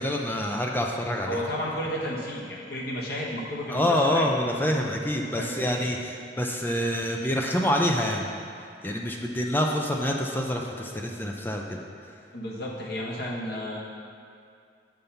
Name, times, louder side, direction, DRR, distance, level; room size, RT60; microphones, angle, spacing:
voice 1, 0.0-1.4 3.7-8.3 8.6-12.2, left 1 dB, 10° left, 0 dB, 0.5 m, -27 dB
voice 2, 1.2-4.3 5.3-5.8 12.3-13.8, equal, 60° left, -4 dB, 1.4 m, -32 dB
6.7 x 5.4 x 5.7 m, 2.4 s
head